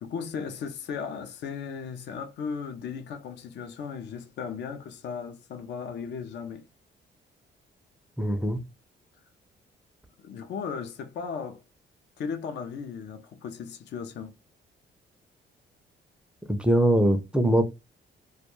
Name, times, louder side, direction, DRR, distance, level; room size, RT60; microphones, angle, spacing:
voice 1, 0.0-6.6 10.2-11.6 12.2-14.3, left 6 dB, 60° left, 0.5 m, -36 dB
voice 2, 8.2-8.6 16.5-17.6, right 1 dB, 5° right, 0.4 m, -22 dB
2.2 x 2.2 x 3.0 m
cardioid pair, 90°, 20 cm